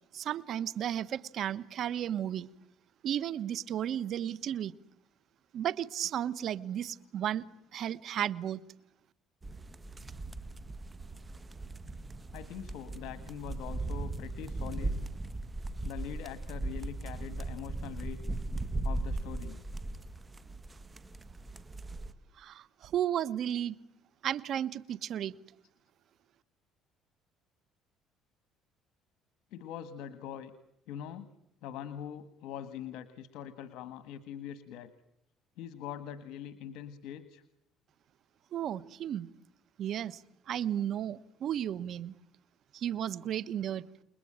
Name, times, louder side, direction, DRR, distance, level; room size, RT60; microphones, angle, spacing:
voice 1, 0.1-2.5 3.0-4.7 5.5-7.4 7.7-8.6 22.4-23.7 24.2-25.3 38.5-39.3 39.8-40.2 40.5-42.1 42.7-43.8, right 10 dB, 55° right, 17 dB, 1.3 m, -33 dB
sound 1, 9.4-22.1, right 2 dB, 20° right, 1.8 m, -38 dB
voice 2, 12.3-15.0 15.8-18.2 18.8-19.6 29.5-30.5 30.9-31.3 31.6-34.9 35.6-37.4, left 9 dB, 80° left, 12 dB, 1.6 m, -43 dB
29.5 x 21.0 x 9.0 m, 0.80 s
cardioid pair, 110°, 0 cm